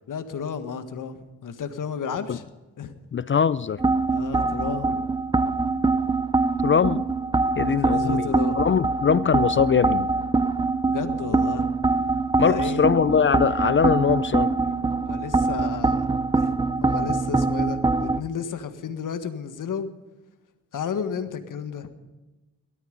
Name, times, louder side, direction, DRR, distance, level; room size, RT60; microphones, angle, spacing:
voice 1, 0.1-2.5 2.8-2.9 4.1-5.0 7.6-8.6 10.9-11.8 12.4-12.9 15.1-16.1 16.4-16.5 16.8-19.9 20.7-21.9, left 6 dB, 65° left, 1.7 m, -32 dB
voice 2, 3.1-3.8 6.6-7.1 7.6-10.1 12.4-14.5, left 7 dB, 35° left, 0.5 m, -22 dB
sound 1, 3.8-18.2, right 3 dB, 15° right, 0.7 m, -24 dB
17.0 x 13.5 x 5.3 m
cardioid pair, 60°, 33 cm